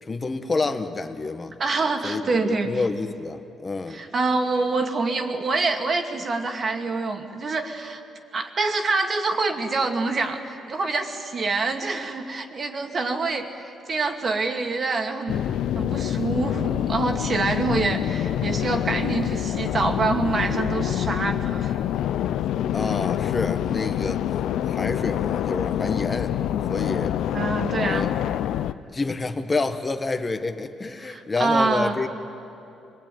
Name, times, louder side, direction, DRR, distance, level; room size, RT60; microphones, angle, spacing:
voice 1, 0.0-1.5 2.0-4.0 22.7-24.2 24.7-26.3 26.7-27.1 27.8-28.1 28.9-32.1, left 3 dB, 25° left, 8 dB, 1.5 m, -28 dB
voice 2, 1.6-2.7 3.9-8.0 8.3-15.4 15.7-21.7 27.3-28.1 31.0-32.0, right 3 dB, 45° right, 4 dB, 2.4 m, -26 dB
sound 1, 15.3-28.7, left 11 dB, 80° left, 0.6 m, -26 dB
24.5 x 20.5 x 9.3 m, 2.8 s
cardioid pair, 90°, 0 cm